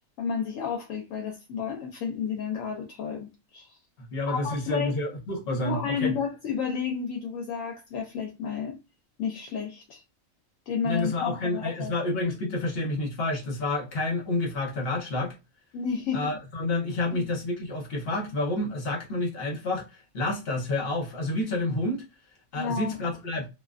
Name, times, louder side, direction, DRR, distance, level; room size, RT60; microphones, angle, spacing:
voice 1, 0.2-3.8 4.3-4.9 5.6-8.8 9.2-10.0 10.7-11.9 15.7-16.4 17.1-17.2 22.6-23.0, left 6 dB, 75° left, 1.0 m, -31 dB
voice 2, 4.1-6.1 10.8-15.3 16.1-19.8 20.1-22.0 22.5-23.5, left 2 dB, 50° left, 1.0 m, -29 dB
2.4 x 2.4 x 2.3 m
omnidirectional pair, 1.4 m